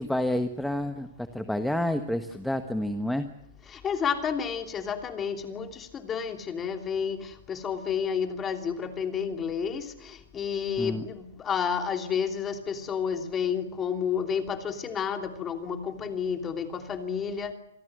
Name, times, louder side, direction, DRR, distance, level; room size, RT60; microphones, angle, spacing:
voice 1, 0.0-3.3 10.8-11.0, left 1 dB, ahead, 8 dB, 1.2 m, -29 dB
voice 2, 3.8-5.7 6.0-7.2 7.5-9.8 10.3-17.5, left 7 dB, 20° left, 6 dB, 2.9 m, -30 dB
27.0 x 18.5 x 7.9 m, 0.87 s
hypercardioid pair, 145°, 0 cm